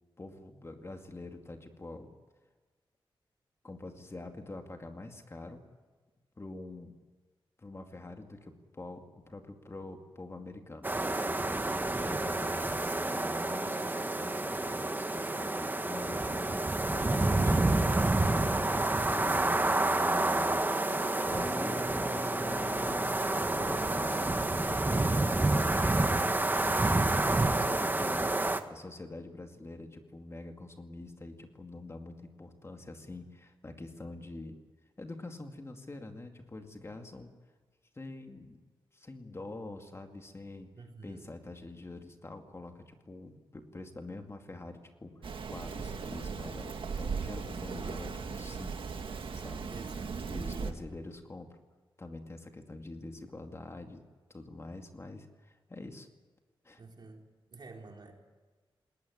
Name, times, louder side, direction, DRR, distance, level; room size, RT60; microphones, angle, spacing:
voice 1, 0.2-2.1 3.6-5.6 6.4-7.0 7.6-11.6 11.9-17.8 18.2-20.6 21.2-28.3 28.7-34.6 35.0-37.3 37.9-38.6 38.9-40.7 41.0-48.9 49.3-49.7 50.3-51.6 52.0-54.0 54.3-56.1 56.6-56.8, left 2 dB, 30° left, 4 dB, 2.3 m, -45 dB
sound 1, 10.8-28.6, right 2 dB, 20° right, 1.4 m, -29 dB
voice 2, 11.8-12.4 40.8-41.3 49.7-50.6 56.8-57.2 57.5-58.1, right 3 dB, 55° right, 1 dB, 4.2 m, -50 dB
sound 2, 16.8-25.9, left 2 dB, 80° left, 6.1 m, -46 dB
Rain, 45.2-50.7, right 5 dB, 75° right, 1.9 m, -38 dB
20.0 x 19.0 x 10.0 m, 1.3 s
wide cardioid pair, 90°, 9 cm